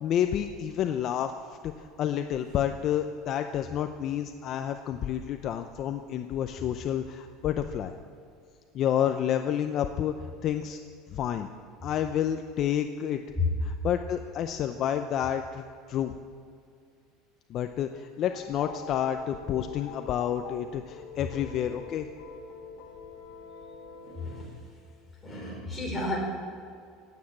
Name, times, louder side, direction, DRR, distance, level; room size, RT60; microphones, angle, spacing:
voice 1, 0.0-7.9 8.7-10.1 10.4-10.8 11.1-11.5 11.8-13.2 13.6-16.1 17.5-22.1, left 10 dB, 40° left, 7 dB, 0.6 m, -29 dB
sound 1, 18.3-24.4, left 6 dB, 65° left, 2.0 m, -45 dB
voice 2, 24.0-24.5 25.2-26.2, left 3 dB, 10° left, -4 dB, 4.6 m, -31 dB
17.5 x 8.8 x 7.3 m, 2.4 s
cardioid pair, 150°, 0 cm